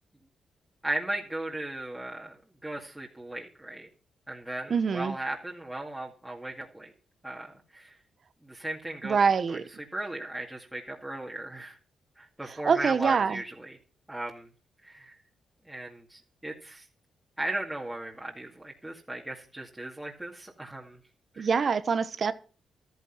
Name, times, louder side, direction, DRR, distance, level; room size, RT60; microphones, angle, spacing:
voice 1, 0.8-2.3 2.6-3.9 4.3-6.9 7.2-7.9 8.4-9.2 9.5-9.6 9.9-11.8 12.2-13.8 14.1-14.5 14.8-15.1 15.7-16.8 17.4-21.0 21.3-21.5, right 1 dB, 5° right, 2.2 m, -37 dB
voice 2, 4.7-5.2 9.0-9.6 12.5-13.4 21.4-22.3, right 5 dB, 50° right, 1.0 m, -25 dB
13.5 x 9.4 x 5.9 m
cardioid pair, 95°, 0 cm